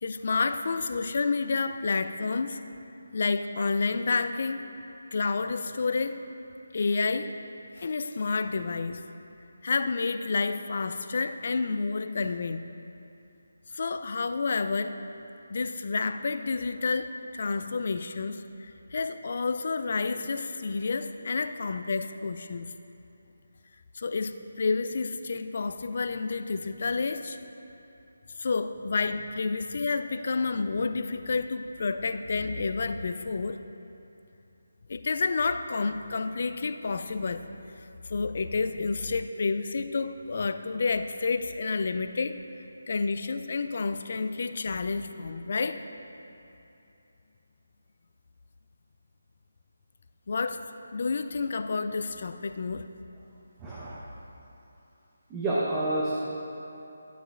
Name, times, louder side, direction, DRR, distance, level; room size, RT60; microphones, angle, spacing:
voice 1, 0.0-2.6 3.1-4.6 5.1-6.2 6.7-7.3 7.8-9.0 9.6-12.6 13.7-15.0 15.5-22.7 23.9-27.4 28.4-33.6 34.9-37.4 38.1-42.4 42.9-45.8 50.3-50.6 50.9-52.9, left 4 dB, 50° left, 9 dB, 0.4 m, -29 dB
voice 2, 53.6-54.0 55.3-56.1, right 1 dB, 15° right, -8 dB, 0.9 m, -28 dB
12.5 x 9.0 x 2.5 m, 2.8 s
figure-of-eight pair, 155°, 0 cm